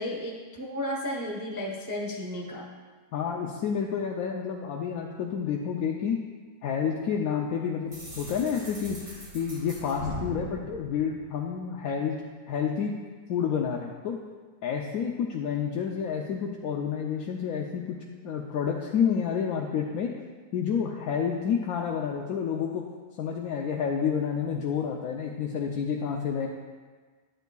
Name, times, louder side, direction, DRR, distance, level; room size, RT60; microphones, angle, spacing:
voice 1, 0.0-2.7, left 1 dB, 20° right, -1 dB, 0.4 m, -33 dB
voice 2, 3.1-6.2 6.6-12.2 12.5-12.9 13.3-14.2 14.6-18.0 18.2-20.1 20.5-22.8 23.2-26.5, left 7 dB, 70° left, 0 dB, 1.0 m, -29 dB
sound 1, 7.9-11.8, left 1 dB, 80° right, 2.6 m, -40 dB
10.5 x 8.9 x 2.3 m, 1.5 s
omnidirectional pair, 1.8 m